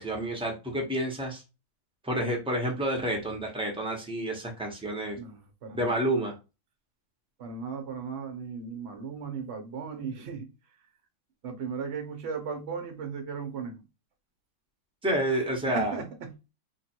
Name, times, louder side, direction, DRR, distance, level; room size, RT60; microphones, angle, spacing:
voice 1, 0.0-1.4 2.0-5.2 5.7-6.3 15.0-15.9, right 1 dB, 5° right, 0.6 m, -29 dB
voice 2, 5.2-5.9 7.4-10.5 11.4-13.8 15.3-16.3, right 5 dB, 50° right, 0.8 m, -36 dB
3.0 x 2.6 x 4.4 m
omnidirectional pair, 2.2 m